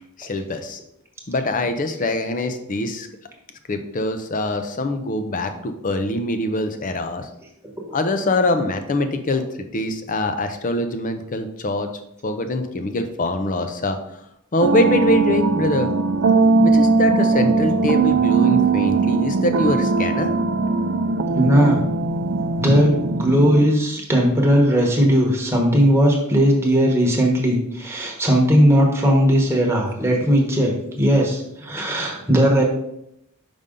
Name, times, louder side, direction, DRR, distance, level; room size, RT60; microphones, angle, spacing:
voice 1, 0.2-0.8 1.3-3.1 3.7-7.3 7.9-11.9 12.2-14.0 14.5-15.9 16.6-20.3, left 2 dB, 35° left, 8 dB, 0.6 m, -23 dB
sound 1, 14.6-23.7, right 4 dB, 60° right, 0.4 m, -19 dB
voice 2, 21.3-21.8 22.6-32.6, equal, 10° right, -1 dB, 1.1 m, -18 dB
5.4 x 5.2 x 3.7 m, 0.79 s
head